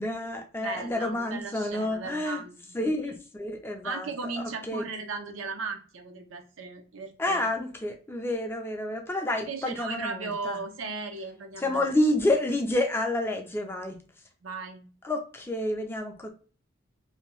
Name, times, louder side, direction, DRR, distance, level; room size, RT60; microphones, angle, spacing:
voice 1, 0.0-2.4 2.7-4.1 4.7-4.8 7.2-10.6 11.6-14.0 15.0-16.3, left 1 dB, 10° left, 3 dB, 0.4 m, -29 dB
voice 2, 0.6-2.9 3.8-7.4 9.4-11.9 14.4-14.9, right 4 dB, 75° right, 5 dB, 0.6 m, -37 dB
2.7 x 2.2 x 3.0 m, 0.38 s
head